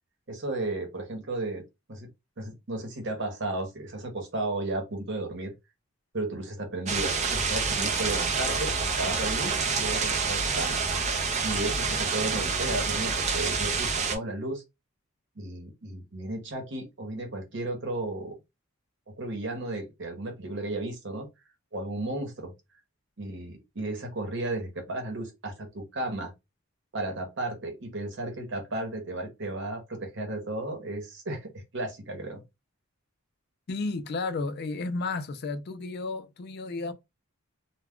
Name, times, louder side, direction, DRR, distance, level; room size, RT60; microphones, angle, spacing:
voice 1, 0.3-1.6 1.9-2.1 2.4-5.5 6.1-10.8 11.4-14.6 15.4-18.3 19.1-21.3 21.7-22.5 23.2-26.3 26.9-32.4, right 2 dB, 55° right, 0.9 m, -34 dB
sound 1, 6.9-14.2, right 4 dB, 30° right, 0.4 m, -27 dB
voice 2, 33.7-36.9, left 3 dB, 45° left, 0.4 m, -32 dB
2.2 x 2.2 x 3.6 m
head